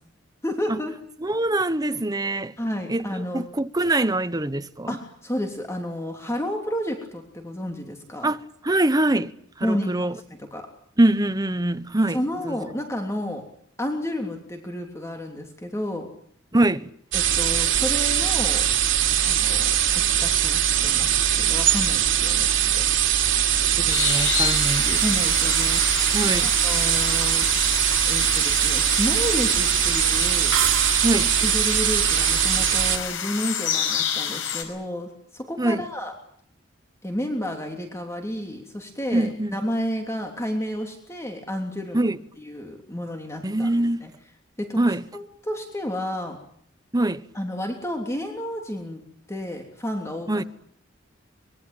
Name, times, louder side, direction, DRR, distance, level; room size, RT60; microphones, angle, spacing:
voice 1, 0.4-0.9 2.6-3.4 4.9-8.3 9.6-10.1 10.4-10.7 12.1-13.4 13.8-16.1 17.1-18.6 19.2-22.5 22.7-22.8 25.0-27.5 28.0-30.5 31.4-36.1 37.0-42.1 42.4-43.7 44.0-44.1 44.6-44.8 45.1-46.4 47.3-49.0 49.3-50.4, equal, 15° left, 3.2 m, -31 dB
voice 2, 1.2-2.5 2.9-5.0 8.2-9.3 9.6-10.2 11.0-12.2 12.4-12.6 16.5-16.9 23.8-25.0 26.1-26.5 31.0-31.3 35.6-35.8 39.1-39.6 41.9-42.2 43.4-44.0 44.8-45.0 46.9-47.3 50.3-50.4, right 1 dB, 20° right, 1.0 m, -23 dB
sound 1, 17.1-33.0, right 10 dB, 70° right, 4.1 m, -21 dB
sound 2, 23.9-34.6, left 8 dB, 85° left, 5.4 m, -29 dB
sound 3, 30.5-31.6, right 10 dB, 90° right, 1.7 m, -28 dB
25.0 x 22.5 x 9.0 m
head